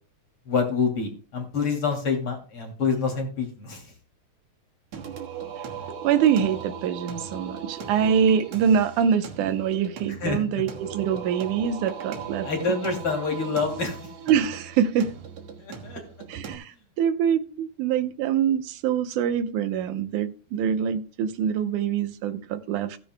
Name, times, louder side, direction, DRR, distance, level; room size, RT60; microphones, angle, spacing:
voice 1, 0.5-3.8 10.1-10.6 12.4-14.0 15.6-16.0, left 4 dB, 45° left, 3.5 m, -27 dB
Singing, 4.9-16.6, right 7 dB, 65° right, 2.5 m, -38 dB
voice 2, 6.0-12.5 14.3-15.1 16.3-23.0, right 8 dB, 80° right, 2.4 m, -24 dB
16.5 x 10.0 x 2.2 m
omnidirectional pair, 3.5 m